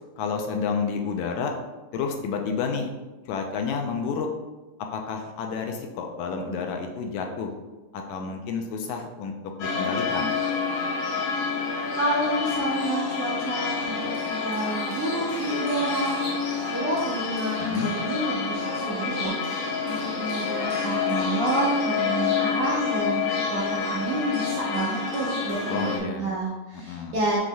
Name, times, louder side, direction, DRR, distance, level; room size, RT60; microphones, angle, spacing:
voice 1, 0.2-1.5 1.9-2.9 3.3-4.3 4.9-7.5 7.9-9.3 9.6-10.3 17.6-17.9 25.7-26.4 26.7-27.2, left 5 dB, 80° left, 3 dB, 1.8 m, -30 dB
sound 1, 9.6-26.0, left 5 dB, 65° left, 1.7 m, -28 dB
voice 2, 12.0-27.4, right 1 dB, 65° right, -7 dB, 1.4 m, -29 dB
6.1 x 3.8 x 2.3 m, 1.1 s
omnidirectional pair, 3.4 m